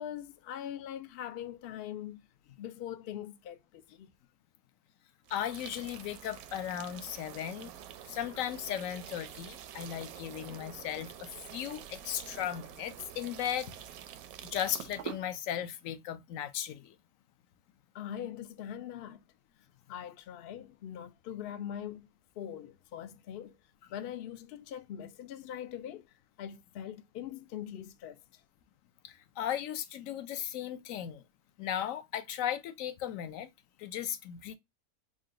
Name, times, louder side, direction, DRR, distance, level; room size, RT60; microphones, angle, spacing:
voice 1, 0.0-2.2 2.6-4.1 17.9-19.2 19.9-22.1 22.4-23.5 23.9-26.1 26.4-28.2, left 10 dB, 85° left, 0.5 m, -42 dB
voice 2, 5.3-7.7 8.1-13.7 14.4-17.0 29.0-31.2 31.6-33.5 33.8-34.5, left 10 dB, 70° left, 0.9 m, -36 dB
sound 1, 5.3-15.2, right 10 dB, 75° right, 1.0 m, -47 dB
3.8 x 2.2 x 3.6 m
omnidirectional pair, 1.6 m